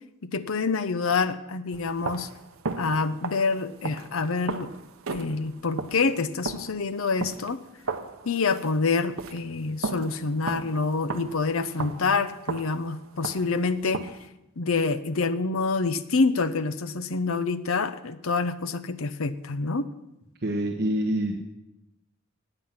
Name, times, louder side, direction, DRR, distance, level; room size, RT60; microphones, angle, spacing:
voice 1, 0.3-2.3 2.8-4.7 5.1-7.6 8.2-14.1 14.6-19.9, left 4 dB, 80° left, 12 dB, 0.7 m, -27 dB
sound 1, 1.7-14.3, right 4 dB, 85° right, 0.9 m, -36 dB
voice 2, 20.4-21.4, right 1 dB, 50° right, 1 dB, 1.2 m, -26 dB
15.5 x 9.1 x 5.8 m, 0.91 s
head